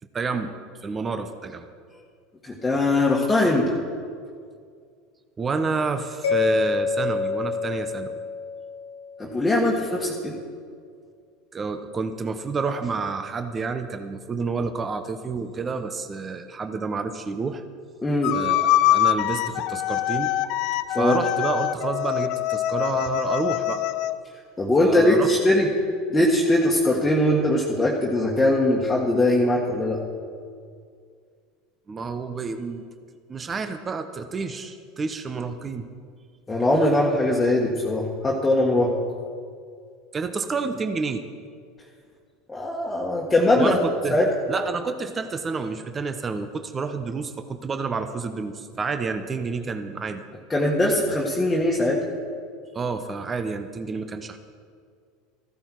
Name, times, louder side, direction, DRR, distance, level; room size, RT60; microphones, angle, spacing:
voice 1, 0.1-0.5 0.8-1.7 5.4-8.2 11.5-17.6 18.3-20.3 20.9-23.8 24.8-25.3 31.9-32.8 33.3-35.9 40.1-41.2 43.5-44.2 44.5-50.2 52.7-54.4, right 4 dB, 25° right, 8 dB, 0.8 m, -29 dB
voice 2, 2.4-3.8 9.2-10.4 18.0-18.4 20.9-21.2 24.6-25.7 26.1-30.0 36.5-38.9 42.5-43.8 44.1-44.3 50.5-52.0, left 1 dB, 15° left, -3 dB, 1.6 m, -21 dB
Mallet percussion, 6.2-9.2, left 4 dB, 90° left, 2.1 m, -26 dB
sound 1, 18.2-24.1, left 14 dB, 60° left, 0.5 m, -24 dB
14.0 x 12.0 x 4.7 m, 2.1 s
hypercardioid pair, 95°, 0 cm